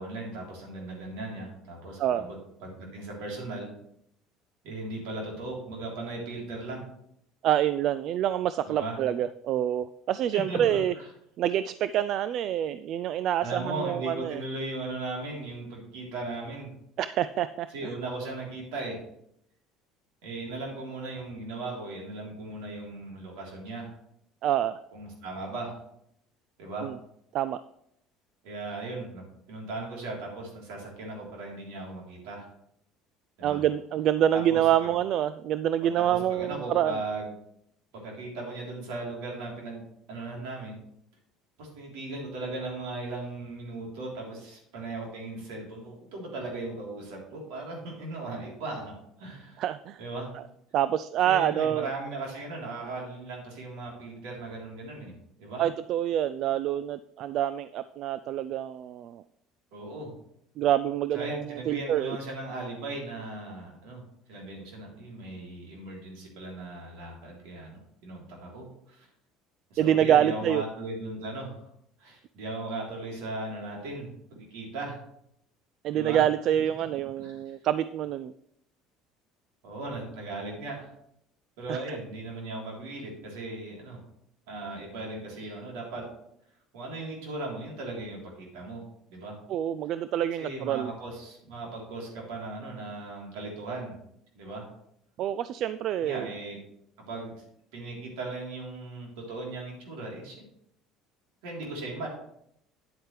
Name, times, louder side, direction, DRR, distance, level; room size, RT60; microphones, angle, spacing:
voice 1, 0.0-2.4 2.6-3.7 4.6-6.9 8.6-9.0 10.3-11.1 13.4-16.7 17.7-19.0 20.2-23.9 24.9-25.8 26.6-26.9 28.4-29.2 29.5-32.5 33.4-33.6 34.3-34.9 35.8-36.0 36.3-37.3 37.9-39.8 40.1-40.8 41.6-49.6 50.0-50.3 51.2-55.1 55.4-55.7 59.7-60.1 61.1-64.0 64.3-69.1 69.7-71.6 72.0-75.0 75.9-76.2 77.2-77.6 79.6-80.9 81.6-84.0 84.5-86.0 86.7-88.8 89.1-89.4 90.4-93.9 94.3-94.7 96.0-96.6 97.1-97.4 97.7-100.4 101.4-102.1, right 2 dB, 80° right, -2 dB, 3.6 m, -37 dB
voice 2, 7.4-10.9 11.4-14.4 17.0-17.9 24.4-24.8 26.8-27.0 27.3-27.6 33.4-37.0 49.6-50.0 50.3-50.4 50.7-51.9 55.6-59.2 60.6-62.2 69.8-70.6 75.8-78.3 81.7-82.0 89.5-90.9 95.2-96.3, right 11 dB, 60° right, 15 dB, 0.3 m, -27 dB
9.5 x 8.7 x 3.3 m, 0.74 s
supercardioid pair, 90°, 0 cm